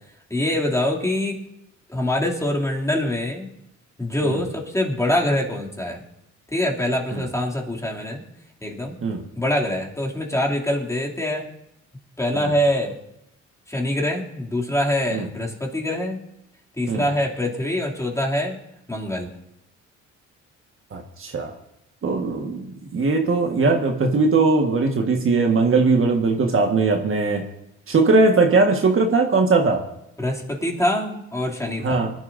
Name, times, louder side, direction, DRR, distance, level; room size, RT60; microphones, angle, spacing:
voice 1, 0.3-1.4 1.9-3.5 4.0-6.0 6.5-8.2 8.6-9.0 9.4-11.5 12.2-13.0 13.7-16.2 16.8-18.6 18.9-19.3 30.2-32.0, left 1 dB, 10° left, -2 dB, 2.7 m, -24 dB
voice 2, 20.9-21.5 22.0-22.7 22.9-27.4 27.9-29.8 31.8-32.1, right 3 dB, 45° right, 2 dB, 1.6 m, -19 dB
25.0 x 11.0 x 2.7 m, 0.83 s
cardioid pair, 90°, 30 cm